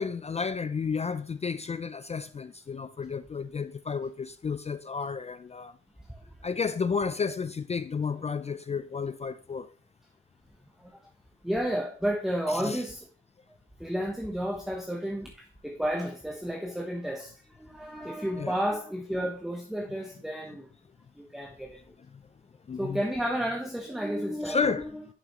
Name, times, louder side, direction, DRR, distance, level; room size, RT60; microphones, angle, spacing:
voice 1, 0.0-5.7 6.4-9.7 12.5-12.8 18.4-18.5 22.7-23.0 24.5-24.8, left 5 dB, 30° left, 0.4 m, -32 dB
voice 2, 11.4-13.1 13.8-20.7 21.2-21.8 22.8-25.0, equal, ahead, 1.2 m, -32 dB
11.0 x 5.9 x 3.1 m
cardioid pair, 95°, 21 cm